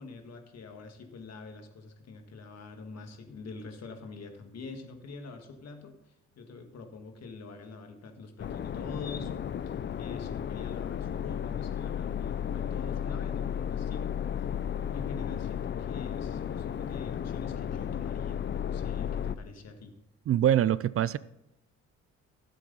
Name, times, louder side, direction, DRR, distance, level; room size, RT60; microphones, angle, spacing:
voice 1, 0.0-9.3 9.7-14.1 14.9-20.0, left 4 dB, 60° left, 1.8 m, -45 dB
sound 1, 8.4-19.3, left 9 dB, 40° left, 0.5 m, -34 dB
voice 2, 20.3-21.2, right 11 dB, 50° right, 0.4 m, -24 dB
16.0 x 7.7 x 4.1 m
cardioid pair, 90°, 30 cm